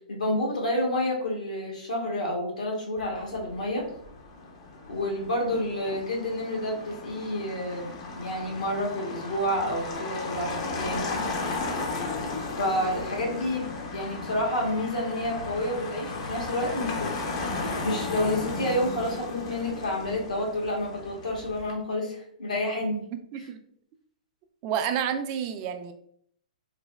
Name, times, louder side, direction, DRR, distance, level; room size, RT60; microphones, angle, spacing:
voice 1, 0.1-3.9 4.9-11.1 12.6-17.1 17.5-23.0, left 1 dB, 80° left, -1 dB, 1.0 m, -29 dB
Motor vehicle (road), 3.0-21.7, left 3 dB, 50° left, 0.6 m, -35 dB
voice 2, 23.1-23.6 24.6-25.9, right 8 dB, 40° right, 8 dB, 0.3 m, -30 dB
3.2 x 2.0 x 2.3 m, 0.65 s
hypercardioid pair, 120°, 4 cm